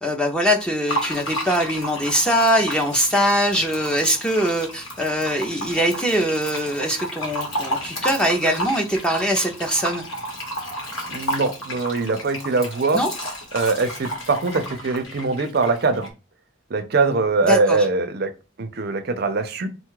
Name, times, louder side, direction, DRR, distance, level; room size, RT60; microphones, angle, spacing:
voice 1, 0.0-10.0 12.9-13.1 17.5-17.8, equal, 5° left, 2 dB, 0.5 m, -22 dB
Fill (with liquid), 0.9-16.1, equal, 80° left, 1.5 m, -32 dB
voice 2, 11.1-13.0 13.5-16.1 16.7-18.3 18.6-19.7, right 3 dB, 50° right, 8 dB, 0.5 m, -22 dB
4.0 x 2.3 x 4.6 m, 0.31 s
head